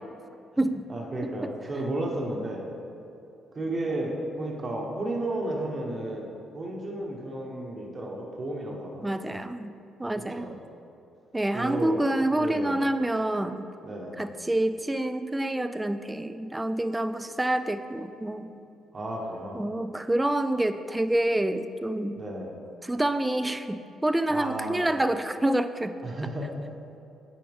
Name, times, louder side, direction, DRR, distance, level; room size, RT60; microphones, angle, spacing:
voice 1, 0.9-2.7 3.5-9.1 10.4-10.5 11.5-12.0 12.4-12.8 13.8-14.2 18.9-19.7 22.2-22.5 24.3-24.9 26.0-26.6, right 1 dB, 35° right, -1 dB, 1.1 m, -33 dB
voice 2, 9.0-9.7 10.0-10.5 11.3-13.7 14.2-18.5 19.5-22.2 22.8-25.9, right 1 dB, 10° right, 10 dB, 0.3 m, -27 dB
9.4 x 4.7 x 3.5 m, 2.7 s
cardioid pair, 90°, 0 cm